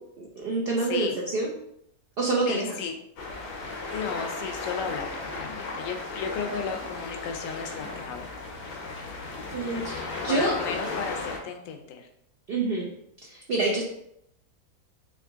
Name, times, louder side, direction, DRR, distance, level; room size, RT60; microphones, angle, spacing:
voice 1, 0.2-1.5 2.2-2.8 9.5-10.6 12.5-12.9 13.2-13.8, right 3 dB, 65° right, -3 dB, 0.5 m, -27 dB
voice 2, 2.5-2.9 3.9-8.3 10.3-12.1, left 6 dB, 65° left, 5 dB, 0.9 m, -34 dB
sound 1, 3.2-11.4, left 3 dB, 85° left, 1.5 m, -35 dB
3.7 x 2.9 x 3.4 m, 0.76 s
omnidirectional pair, 1.7 m